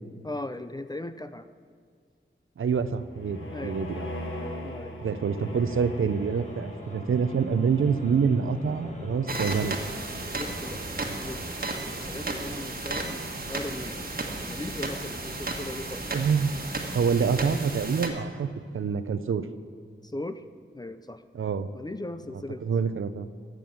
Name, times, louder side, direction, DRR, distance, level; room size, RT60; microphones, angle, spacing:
voice 1, 0.2-1.5 3.5-3.8 4.6-5.0 10.3-10.8 11.2-11.5 11.8-14.1 14.5-16.1 20.0-20.5 20.7-21.2 21.7-22.6, left 2 dB, 20° left, 11 dB, 0.5 m, -38 dB
voice 2, 2.6-4.1 5.0-9.8 16.1-16.5 16.9-19.4 21.3-21.7 22.6-23.3, right 6 dB, 90° right, 12 dB, 0.6 m, -26 dB
sound 1, 2.7-7.3, left 1 dB, 75° left, 1.6 m, -39 dB
sound 2, 5.6-18.8, left 1 dB, 35° left, 2.0 m, -43 dB
sound 3, 9.3-18.1, right 2 dB, 45° right, 1.4 m, -34 dB
12.5 x 7.7 x 7.1 m, 2.2 s
wide cardioid pair, 105°, 20 cm